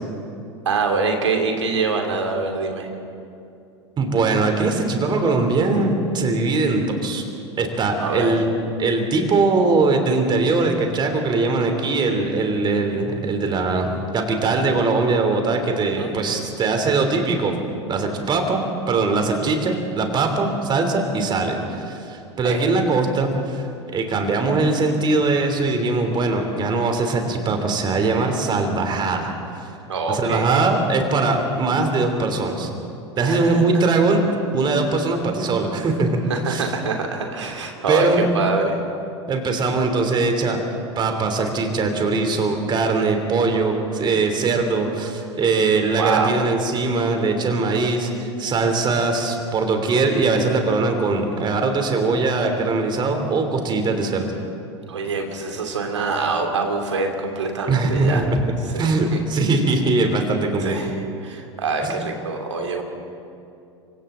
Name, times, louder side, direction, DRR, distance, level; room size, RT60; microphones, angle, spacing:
voice 1, 0.6-2.9 8.0-8.3 16.0-16.1 22.4-22.6 29.9-30.6 33.2-33.6 36.3-38.8 46.0-46.4 54.9-58.3 58.7-59.2 60.6-60.9 61.2-62.8, right 4 dB, 75° right, 3 dB, 3.0 m, -25 dB
voice 2, 4.0-7.2 7.6-17.6 17.9-29.7 30.1-32.7 33.2-34.2 34.5-36.1 36.5-36.6 37.9-38.2 39.3-40.6 41.0-54.3 57.7-60.8 61.8-62.0, right 3 dB, 30° right, 5 dB, 3.3 m, -21 dB
29.5 x 24.5 x 3.9 m, 2.6 s
figure-of-eight pair, 80°, 15 cm